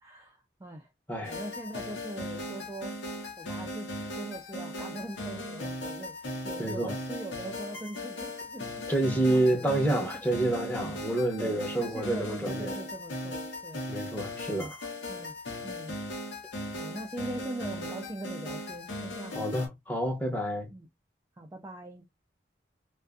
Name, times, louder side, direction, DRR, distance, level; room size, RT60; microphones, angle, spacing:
voice 1, 0.0-0.9 1.2-3.0 3.4-8.8 9.2-9.7 10.1-10.2 11.4-13.8 15.1-15.4 15.6-15.9 16.7-19.6 20.7-20.9 21.4-22.1, right 1 dB, 15° right, 0.3 m, -41 dB
sound 1, 1.2-19.7, left 1 dB, 80° left, 0.9 m, -38 dB
voice 2, 6.6-6.9 8.9-12.8 13.9-14.8 19.3-20.7, right 1 dB, 10° left, 0.7 m, -28 dB
2.5 x 2.4 x 2.2 m
head